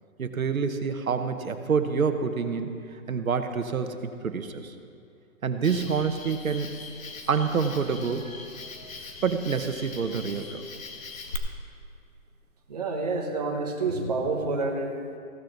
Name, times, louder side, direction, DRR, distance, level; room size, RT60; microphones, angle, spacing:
voice 1, 0.2-4.7 5.4-6.7 7.3-8.4 8.8-8.9 9.2-10.6, right 5 dB, 75° right, 7 dB, 1.2 m, -27 dB
Cricket, 5.6-11.4, left 5 dB, 65° left, 1.5 m, -41 dB
voice 2, 12.7-15.2, right 3 dB, 30° right, 0 dB, 1.0 m, -28 dB
15.5 x 13.0 x 4.0 m, 2.4 s
hypercardioid pair, 175°, 42 cm